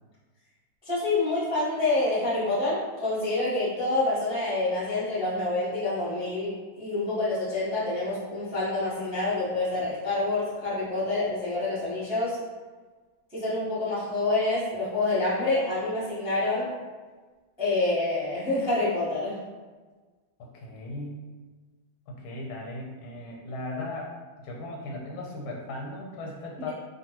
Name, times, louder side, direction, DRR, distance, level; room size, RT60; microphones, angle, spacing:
voice 1, 0.8-12.4 13.3-16.7 17.6-19.4, left 2 dB, 5° right, -10 dB, 0.5 m, -27 dB
voice 2, 20.5-21.3 22.1-24.1 24.4-26.7, left 2 dB, 90° left, -1 dB, 1.5 m, -37 dB
3.2 x 2.3 x 2.9 m, 1.4 s
omnidirectional pair, 2.2 m